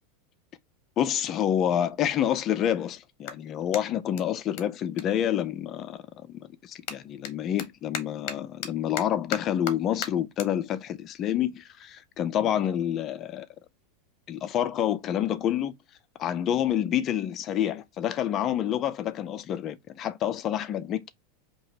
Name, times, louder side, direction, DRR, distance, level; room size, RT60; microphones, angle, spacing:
voice 1, 1.0-13.5 14.3-15.7 16.2-21.1, left 10 dB, 25° left, 0.4 m, -28 dB
Clapping, 3.2-6.0 6.3-12.9, left 8 dB, 45° left, 0.8 m, -41 dB
4.7 x 2.9 x 2.7 m
supercardioid pair, 180°, 0 cm